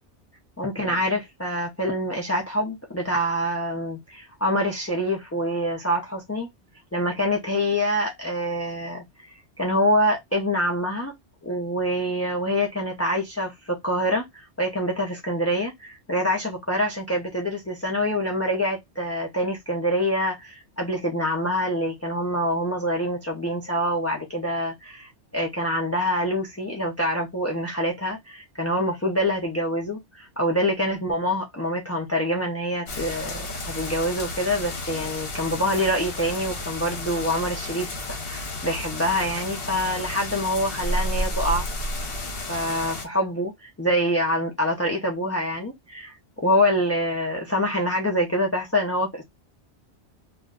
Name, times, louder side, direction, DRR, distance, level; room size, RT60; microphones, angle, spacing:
voice 1, 0.6-6.5 6.9-11.1 11.4-41.7 42.5-49.2, equal, 20° left, 0.5 m, -26 dB
sound 1, 32.9-43.0, left 1 dB, 60° left, 1.0 m, -32 dB
2.5 x 2.2 x 3.6 m
omnidirectional pair, 1.2 m